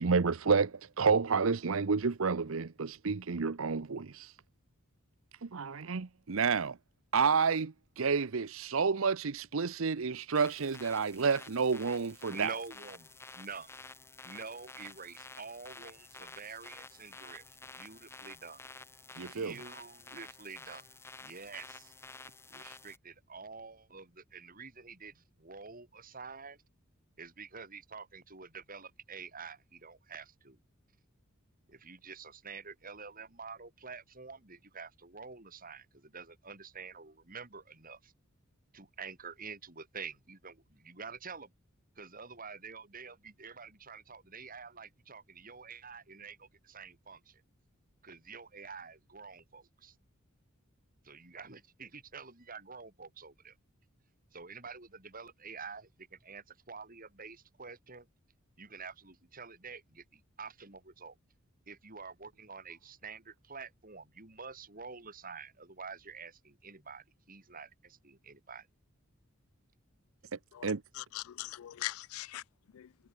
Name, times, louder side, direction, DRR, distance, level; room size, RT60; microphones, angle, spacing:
voice 1, 0.0-4.3 5.4-6.8 7.1-12.5 19.2-19.5 70.6-70.8, right 5 dB, 75° right, 0.7 m, -30 dB
sound 1, 10.3-23.0, left 3 dB, 10° left, 1.2 m, -51 dB
voice 2, 12.3-13.7 14.2-18.6 19.2-20.9 21.2-21.9 22.5-26.6 27.2-30.6 31.7-38.1 38.7-41.5 42.0-47.4 48.0-49.9 51.0-53.5 54.3-58.1 58.6-61.1 61.7-68.7, right 5 dB, 40° right, 5.1 m, -48 dB
voice 3, 70.5-72.4 72.7-72.9, left 15 dB, 85° left, 0.3 m, -41 dB
head